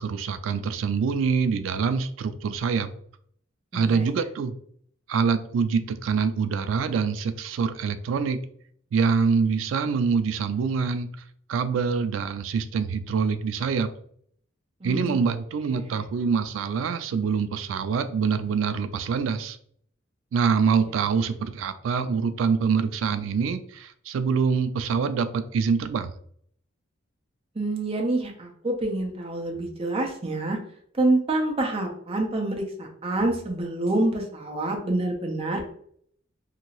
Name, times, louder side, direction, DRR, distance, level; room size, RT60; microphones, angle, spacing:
voice 1, 0.0-2.9 3.7-4.6 5.1-8.4 8.9-11.1 11.5-13.9 14.8-19.6 20.3-26.1, right 5 dB, 85° right, 12 dB, 0.3 m, -25 dB
voice 2, 3.7-4.1 14.8-15.2 15.8-16.0 27.5-30.6 31.0-35.6, right 2 dB, 30° right, 2 dB, 0.6 m, -27 dB
2.8 x 2.6 x 2.9 m, 0.63 s
head